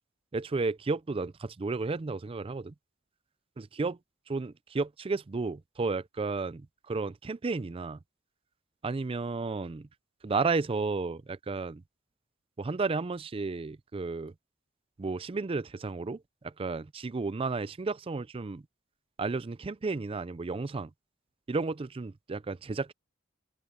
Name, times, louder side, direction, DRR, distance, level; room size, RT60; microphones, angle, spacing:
voice 1, 0.3-2.7 3.6-4.0 4.3-8.0 8.8-9.9 10.2-11.8 12.6-14.3 15.0-18.6 19.2-20.9 21.5-22.9, right 3 dB, 30° right, 0.4 m, -33 dB
open air
head